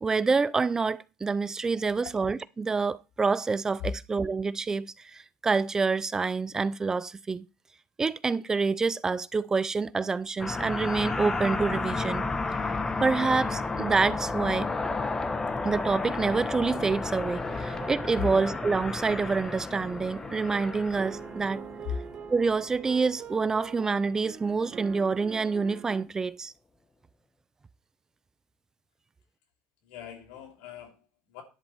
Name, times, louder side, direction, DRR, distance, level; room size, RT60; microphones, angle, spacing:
voice 1, 0.0-7.5 8.0-12.3 13.0-14.7 15.6-21.6 22.3-26.5, right 4 dB, 20° right, 0.4 m, -27 dB
sound 1, 10.4-23.1, left 3 dB, 20° left, 1.0 m, -32 dB
sound 2, 17.5-26.0, right 7 dB, 45° right, 1.1 m, -44 dB
voice 2, 29.8-31.4, left 9 dB, 90° left, 2.9 m, -37 dB
11.0 x 4.2 x 7.7 m
cardioid pair, 120°, 3 cm